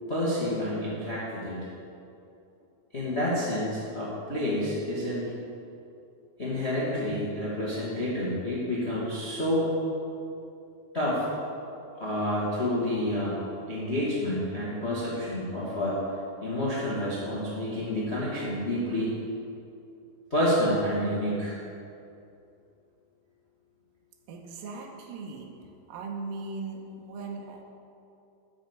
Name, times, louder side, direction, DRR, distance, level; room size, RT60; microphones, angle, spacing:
voice 1, 0.1-1.6 2.9-5.2 6.4-9.7 10.9-11.3 11.9-13.4 13.7-16.0 16.4-19.1 20.3-21.6, left 1 dB, 60° left, -7 dB, 0.6 m, -29 dB
voice 2, 24.3-25.5 25.9-27.6, right 3 dB, 80° right, 1 dB, 2.6 m, -38 dB
9.8 x 6.2 x 8.0 m, 2.6 s
omnidirectional pair, 4.3 m